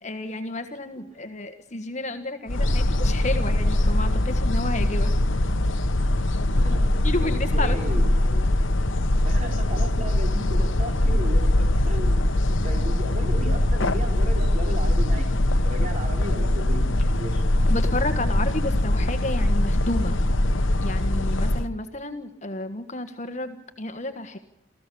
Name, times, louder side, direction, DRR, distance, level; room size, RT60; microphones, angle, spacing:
voice 1, 0.0-5.1 7.0-7.9 17.7-20.2 20.8-24.4, left 2 dB, 35° left, 8 dB, 1.5 m, -31 dB
sound 1, 2.5-21.7, left 1 dB, 65° left, 1.1 m, -22 dB
voice 2, 6.5-8.4 9.2-11.5 11.8-17.4, right 1 dB, 35° right, 2 dB, 4.8 m, -36 dB
28.5 x 15.0 x 7.0 m, 0.85 s
head